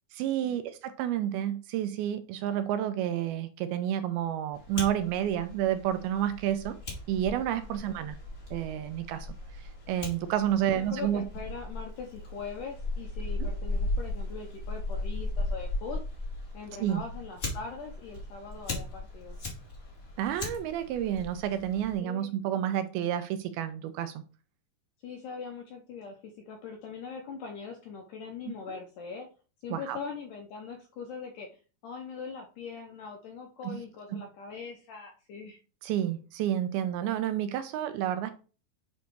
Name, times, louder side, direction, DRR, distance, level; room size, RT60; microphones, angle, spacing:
voice 1, 0.1-6.8 7.1-8.2 8.5-9.3 9.9-11.3 16.8-17.0 20.2-24.2 28.7-28.8 29.7-30.0 33.6-33.8 34.1-34.2 35.8-38.3, right 11 dB, 80° right, 10 dB, 2.3 m, -30 dB
Fire, 4.5-21.9, left 2 dB, 30° left, 1.8 m, -37 dB
voice 2, 10.5-16.0 16.5-19.4 22.0-22.3 25.0-29.3 29.6-31.5 31.8-35.6, left 5 dB, 75° left, 3 dB, 1.9 m, -41 dB
8.3 x 3.1 x 4.5 m, 0.36 s
omnidirectional pair, 4.6 m